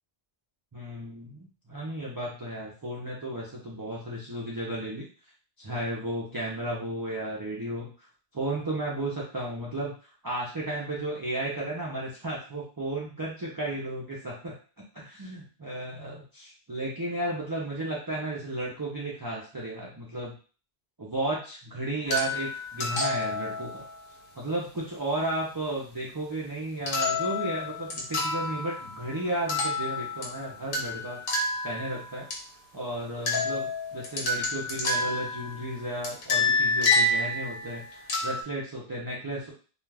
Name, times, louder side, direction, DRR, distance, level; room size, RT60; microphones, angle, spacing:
voice 1, 0.7-5.1 5.6-8.1 8.3-9.9 10.2-14.5 14.9-20.3 21.0-23.9 24.3-31.2 31.6-32.3 32.7-39.5, right 1 dB, 30° right, -5 dB, 0.4 m, -34 dB
sound 1, 22.1-24.0 26.9-29.1 29.5-32.3 33.3-35.7 36.0-38.4, left 2 dB, 60° left, 0.8 m, -29 dB
2.3 x 2.3 x 3.3 m, 0.38 s
omnidirectional pair, 1.1 m